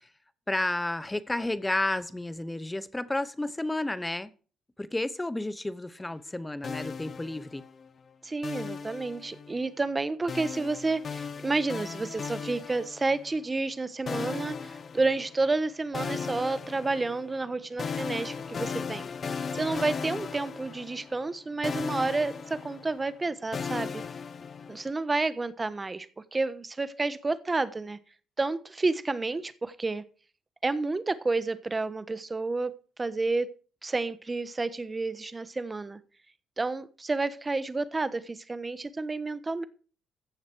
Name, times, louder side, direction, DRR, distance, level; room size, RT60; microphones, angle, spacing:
voice 1, 0.5-4.3 4.8-7.6, left 2 dB, 15° left, 1.0 m, -31 dB
sound 1, 6.6-7.9 8.4-9.6 10.3-13.4 14.1-15.6 15.9-21.4 21.6-24.9, left 5 dB, 45° left, 0.9 m, -37 dB
voice 2, 8.2-19.1 19.5-24.0 24.7-26.1 26.3-28.0 28.4-30.0 30.6-32.7 33.0-33.5 33.8-36.0 36.6-39.6, right 3 dB, 25° right, 1.2 m, -30 dB
15.0 x 7.1 x 4.7 m
cardioid pair, 90°, 0 cm